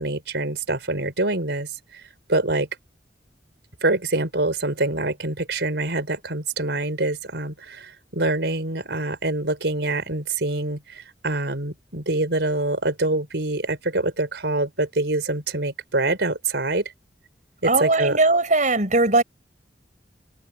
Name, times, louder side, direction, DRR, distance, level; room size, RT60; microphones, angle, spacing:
voice 1, 0.0-2.7 3.8-16.9 17.6-18.2, right 2 dB, 75° right, 4.5 m, -25 dB
voice 2, 17.6-19.2, right 2 dB, 45° right, 7.3 m, -19 dB
head